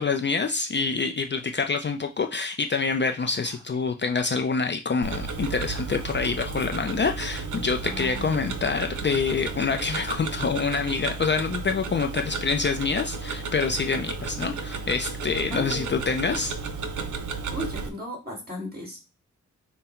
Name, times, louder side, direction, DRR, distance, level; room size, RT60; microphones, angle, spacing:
voice 1, 0.0-16.5, left 5 dB, 40° left, 5 dB, 0.4 m, -26 dB
Whispering, 3.2-3.9 4.2-4.3 5.5-6.3 6.9-7.0 7.8-9.0, left 1 dB, 50° right, 1.8 m, -46 dB
Tick-tock, 5.0-17.9, right 4 dB, 75° right, 0.7 m, -33 dB
voice 2, 15.5-16.4 17.5-19.0, equal, 30° right, 0 dB, 2.0 m, -36 dB
5.4 x 2.1 x 4.3 m, 0.27 s
wide cardioid pair, 90°, 30 cm